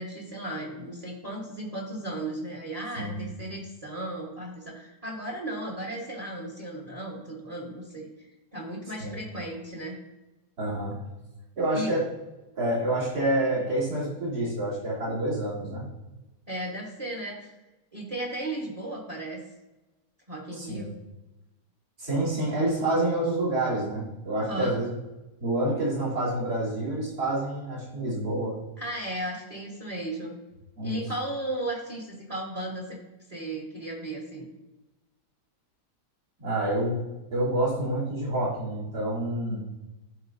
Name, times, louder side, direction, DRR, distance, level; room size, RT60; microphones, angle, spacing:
voice 1, 0.0-8.1 8.5-10.0 11.7-11.9 16.5-17.5 17.9-19.4 20.3-20.9 24.4-24.8 28.8-30.3 30.8-33.0 33.3-34.5, right 1 dB, 25° right, -2 dB, 1.2 m, -35 dB
voice 2, 3.0-3.3 9.0-9.1 10.6-11.0 11.6-12.1 12.5-15.9 20.5-20.9 22.0-24.9 25.4-28.6 30.8-31.0 36.4-37.0 37.3-39.6, right 1 dB, 65° right, -7 dB, 3.3 m, -28 dB
12.0 x 4.3 x 2.6 m, 1.0 s
omnidirectional pair, 1.8 m